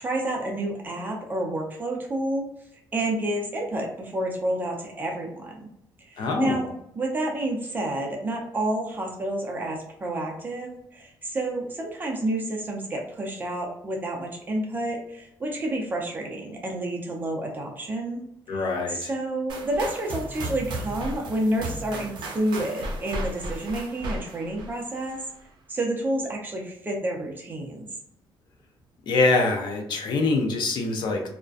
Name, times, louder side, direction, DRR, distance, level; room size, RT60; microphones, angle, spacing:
voice 1, 0.0-2.5 2.9-5.7 6.1-6.7 7.0-18.6 18.9-25.2 25.7-27.9, right 1 dB, 20° right, 0 dB, 0.5 m, -29 dB
voice 2, 6.2-6.6 18.5-19.1 29.1-31.3, left 3 dB, 60° left, 2 dB, 0.5 m, -24 dB
sound 1, 19.5-25.3, right 1 dB, 65° right, 0.6 m, -35 dB
2.4 x 2.1 x 2.4 m, 0.76 s
cardioid pair, 145°, 9 cm